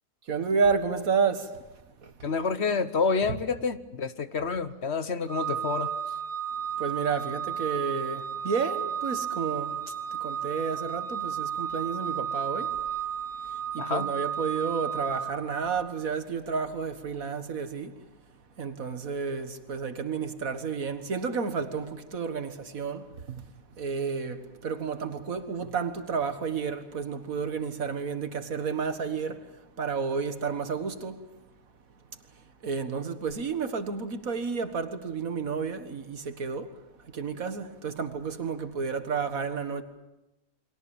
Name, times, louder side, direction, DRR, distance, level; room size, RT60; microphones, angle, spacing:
voice 1, 0.3-1.5 2.0-2.1 6.8-9.8 10.2-12.7 13.7-17.9 18.6-23.4 23.8-29.4 29.8-31.2 32.6-36.7 37.1-39.8, right 5 dB, 80° right, 2.0 m, -31 dB
voice 2, 2.2-5.9 13.8-14.1, left 5 dB, 55° left, 1.2 m, -28 dB
Organ, 5.3-16.0, right 8 dB, 25° right, 1.2 m, -33 dB
29.0 x 23.0 x 7.2 m
omnidirectional pair, 1.4 m